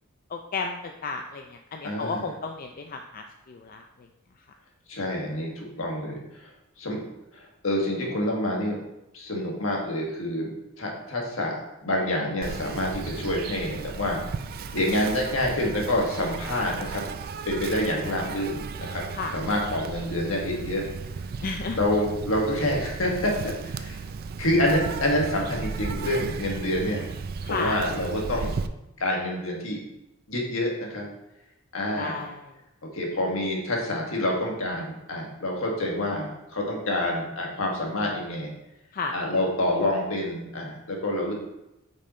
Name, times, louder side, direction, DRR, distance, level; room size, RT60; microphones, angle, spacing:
voice 1, 0.3-4.1 19.1-19.3 21.4-21.8 27.4-27.8 32.0-32.5 38.9-39.1, left 4 dB, 45° left, 3 dB, 0.4 m, -33 dB
voice 2, 1.8-2.3 4.9-6.5 6.8-7.0 7.3-8.8 9.1-10.5 10.8-11.5 11.8-14.2 14.7-17.0 17.4-19.0 19.3-20.9 21.8-24.0 24.4-27.1 27.5-28.5 29.0-29.8 30.3-31.1 31.7-32.2 32.9-38.5 39.1-41.3, left 1 dB, 70° left, -1 dB, 1.6 m, -27 dB
Insect, 12.4-28.7, right 5 dB, 45° right, 0.4 m, -35 dB
5.3 x 5.3 x 4.2 m, 0.90 s
head